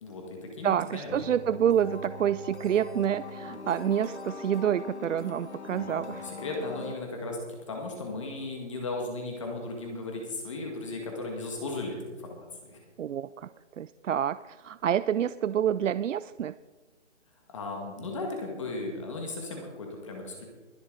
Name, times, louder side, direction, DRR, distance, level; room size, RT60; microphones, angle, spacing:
voice 1, 0.0-1.3 5.7-7.4 7.7-12.8 17.5-20.4, left 2 dB, 25° left, 1 dB, 1.8 m, -36 dB
voice 2, 0.6-6.3 13.0-13.5 13.8-16.5, right 9 dB, 85° right, 15 dB, 0.5 m, -28 dB
sound 1, 1.1-7.0, left 3 dB, 65° left, 1.7 m, -41 dB
22.0 x 8.2 x 3.9 m, 1.3 s
hypercardioid pair, 170°, 37 cm